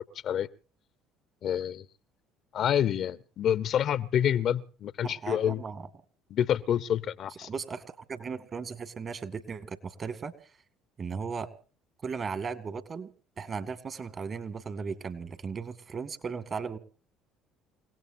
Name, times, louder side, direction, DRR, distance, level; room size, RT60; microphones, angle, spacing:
voice 1, 1.4-1.8 2.5-5.6 6.3-7.5, left 9 dB, 55° left, 16 dB, 0.9 m, -27 dB
voice 2, 5.0-5.9 7.4-10.3 11.0-11.5 12.0-13.1 13.4-16.8, right 5 dB, 40° right, 12 dB, 2.2 m, -36 dB
29.0 x 17.5 x 2.7 m, 0.38 s
hypercardioid pair, 60°, 0 cm